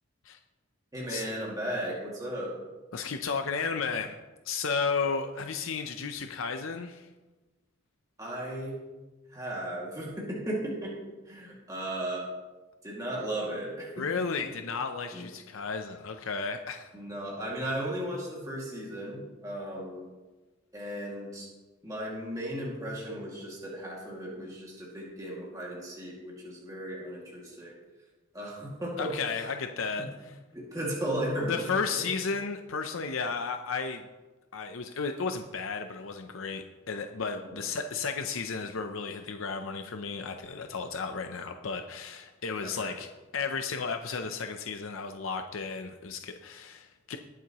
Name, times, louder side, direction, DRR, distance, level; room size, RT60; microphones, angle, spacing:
voice 1, 0.9-2.6 8.2-8.8 9.3-10.9 11.2-12.3 12.8-14.0 14.4-14.5 15.1-15.2 16.9-20.1 20.7-21.5 21.8-27.8 28.3-29.1 30.5-31.6 31.9-32.1 37.4-37.6 42.6-43.0, right 1 dB, 15° right, -5 dB, 2.2 m, -35 dB
voice 2, 2.9-4.2 4.4-7.1 14.0-16.9 29.0-30.1 31.5-34.1 34.5-43.1 43.3-47.2, left 5 dB, 75° left, 6 dB, 0.6 m, -33 dB
20.0 x 7.5 x 3.0 m, 1.2 s
head